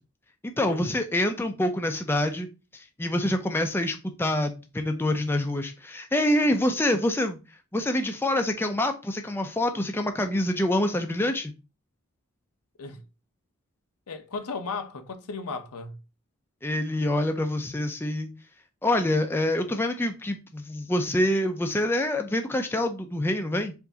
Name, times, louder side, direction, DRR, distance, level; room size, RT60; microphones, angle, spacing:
voice 1, 0.4-2.5 2.7-7.4 7.7-11.5 16.6-18.3 18.8-23.7, left 1 dB, 10° left, 0.4 m, -26 dB
voice 2, 14.1-16.0, left 4 dB, 90° left, 0.7 m, -35 dB
4.6 x 2.6 x 3.9 m
head